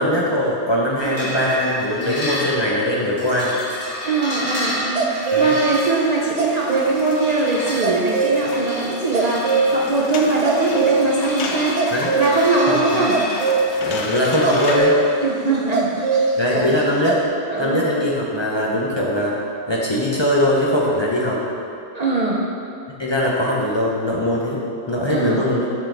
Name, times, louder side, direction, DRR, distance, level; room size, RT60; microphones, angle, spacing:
voice 1, 0.0-3.6 5.3-5.6 11.9-12.1 12.7-13.0 13.8-15.0 16.4-17.2 17.6-19.3 19.7-21.4 23.0-24.6 24.9-25.7, left 1 dB, 30° left, -5 dB, 0.7 m, -21 dB
sound 1, 1.0-14.8, left 1 dB, 55° left, 2.0 m, -31 dB
voice 2, 4.0-11.8 12.1-13.2 15.2-16.8 17.5-17.9 21.9-22.4 25.1-25.5, right 3 dB, 45° right, -4 dB, 0.6 m, -22 dB
sound 2, 4.3-5.8 6.4-7.0 7.8-8.5 9.1-10.0 10.3-11.0 11.6-12.4 13.1-13.6 14.4-14.9 15.7-16.5 16.8-17.2, right 5 dB, 85° right, 1.0 m, -20 dB
sound 3, 5.7-14.8, left 3 dB, 75° left, 0.9 m, -34 dB
7.2 x 3.9 x 5.0 m, 2.6 s
omnidirectional pair, 1.2 m